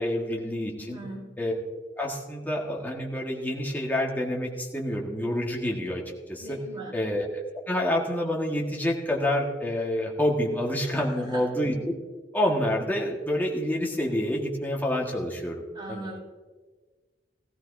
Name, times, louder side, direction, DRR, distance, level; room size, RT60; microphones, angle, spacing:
voice 1, 0.0-1.0 1.4-1.5 2.0-6.0 6.3-6.6 6.9-11.9 12.3-15.6 15.9-16.1, left 1 dB, 10° left, -2 dB, 1.6 m, -28 dB
voice 2, 0.8-1.2 6.4-6.9 10.9-11.4 15.7-16.2, right 2 dB, 25° right, -2 dB, 4.8 m, -40 dB
16.5 x 15.0 x 2.7 m, 1.4 s
head